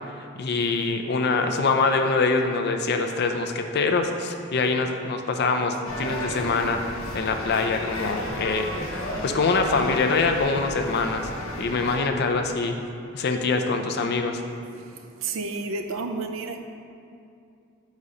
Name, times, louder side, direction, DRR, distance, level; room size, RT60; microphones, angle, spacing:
voice 1, 0.4-8.7 9.2-12.7 13.1-14.4, left 4 dB, 50° left, 5 dB, 0.4 m, -24 dB
sound 1, 5.9-12.0, left 1 dB, 85° left, 1.0 m, -33 dB
voice 2, 14.7-16.6, right 3 dB, 70° right, 5 dB, 0.5 m, -32 dB
5.2 x 4.2 x 4.9 m, 2.5 s
head